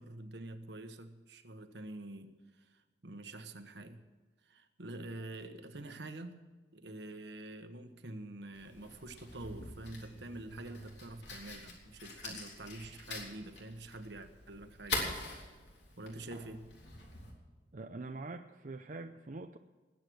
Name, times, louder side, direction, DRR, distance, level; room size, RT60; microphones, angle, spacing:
voice 1, 0.0-4.0 4.4-6.4 6.7-15.2 16.0-16.7, right 2 dB, 70° right, 8 dB, 1.3 m, -47 dB
Fire, 8.5-17.3, left 2 dB, 70° left, 3.6 m, -44 dB
voice 2, 17.7-19.6, right 3 dB, 50° right, 5 dB, 0.6 m, -44 dB
20.0 x 8.6 x 6.3 m, 1.3 s
head